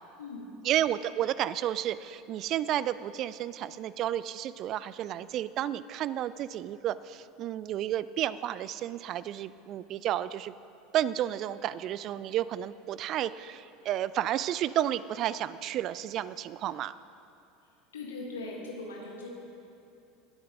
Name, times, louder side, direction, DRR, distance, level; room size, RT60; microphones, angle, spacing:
voice 1, 0.6-10.5 10.9-16.9, right 12 dB, 45° right, 17 dB, 0.3 m, -31 dB
voice 2, 17.9-19.3, left 3 dB, 75° left, -2 dB, 1.7 m, -40 dB
19.0 x 8.5 x 3.8 m, 2.7 s
figure-of-eight pair, 75°, 0 cm